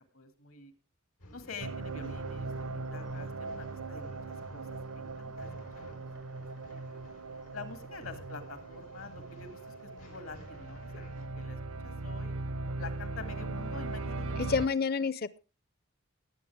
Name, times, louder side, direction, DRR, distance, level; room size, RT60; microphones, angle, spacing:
voice 1, 0.1-0.7 1.3-6.8 7.5-12.4 12.8-14.4 14.8-14.9, left 4 dB, 70° left, 10 dB, 2.2 m, -47 dB
Male speech man speaking / Chatter / Rattle, 1.2-11.2, left 1 dB, 90° left, 4.5 m, -54 dB
sound 1, 1.6-14.7, right 3 dB, 85° right, 0.8 m, -39 dB
voice 2, 14.5-15.4, left 5 dB, 45° left, 19 dB, 0.6 m, -29 dB
19.0 x 8.6 x 3.4 m, 0.32 s
head